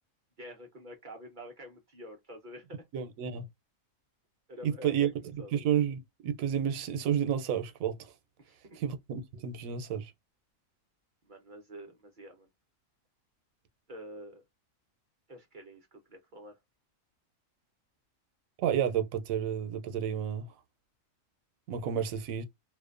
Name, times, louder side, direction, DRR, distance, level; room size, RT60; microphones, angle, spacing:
voice 1, 0.4-2.8 4.5-5.1 5.4-5.5 8.4-8.8 11.2-12.5 13.9-14.4 15.3-16.6, equal, 50° right, 0.6 m, -47 dB
voice 2, 2.9-3.5 4.6-8.1 8.7-10.1 18.6-20.5 21.7-22.4, right 9 dB, 85° right, 1.0 m, -31 dB
2.5 x 2.1 x 2.4 m
omnidirectional pair, 1.4 m